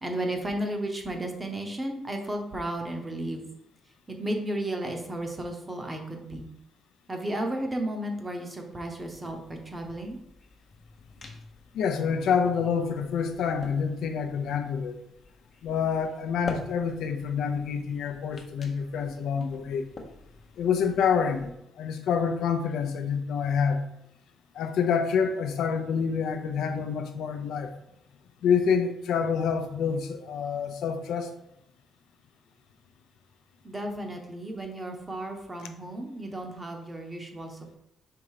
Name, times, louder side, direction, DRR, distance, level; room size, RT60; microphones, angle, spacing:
voice 1, 0.0-3.4 4.1-6.5 7.1-10.2 33.6-37.8, right 1 dB, 15° right, 3 dB, 0.8 m, -33 dB
sound 1, 8.9-21.5, left 3 dB, 30° left, 0.7 m, -47 dB
voice 2, 11.7-15.0 15.6-19.9 20.6-23.8 24.5-27.7 28.4-31.3, left 6 dB, 70° left, 7 dB, 0.6 m, -27 dB
4.6 x 3.8 x 5.6 m, 0.81 s
cardioid pair, 170°, 0 cm